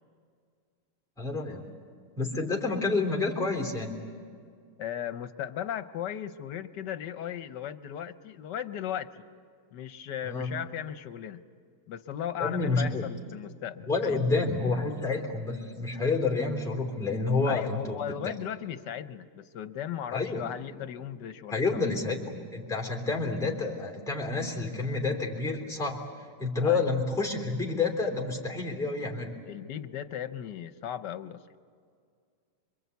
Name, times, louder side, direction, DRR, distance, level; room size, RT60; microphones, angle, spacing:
voice 1, 1.2-1.7 2.2-3.9 10.2-10.5 12.4-13.1 13.9-18.3 20.1-20.4 21.5-26.0 26.4-29.3, left 3 dB, ahead, 0 dB, 3.0 m, -29 dB
voice 2, 4.8-9.1 9.7-11.4 11.9-14.2 17.4-21.9 26.6-26.9 29.5-31.4, left 10 dB, 75° left, 12 dB, 1.5 m, -37 dB
27.0 x 23.5 x 8.3 m, 2.2 s
omnidirectional pair, 1.9 m